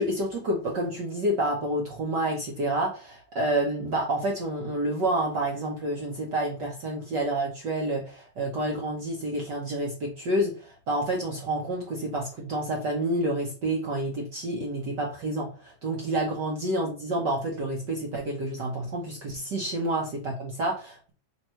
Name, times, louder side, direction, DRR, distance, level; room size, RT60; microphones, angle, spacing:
voice 1, 0.0-21.1, right 1 dB, 70° right, -1 dB, 1.0 m, -29 dB
6.1 x 3.6 x 4.4 m, 0.37 s
omnidirectional pair, 3.5 m